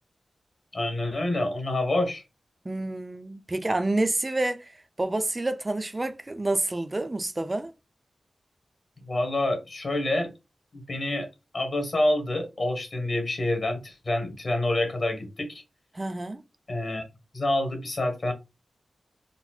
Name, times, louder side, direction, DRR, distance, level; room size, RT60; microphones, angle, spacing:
voice 1, 0.7-2.2 9.0-10.3 10.7-11.3 11.5-15.6 16.7-17.1 17.3-18.3, left 1 dB, 45° left, 1.3 m, -27 dB
voice 2, 2.6-7.7 15.9-16.4, right 2 dB, 20° right, 0.4 m, -28 dB
4.0 x 2.0 x 4.2 m
wide cardioid pair, 120°, 0 cm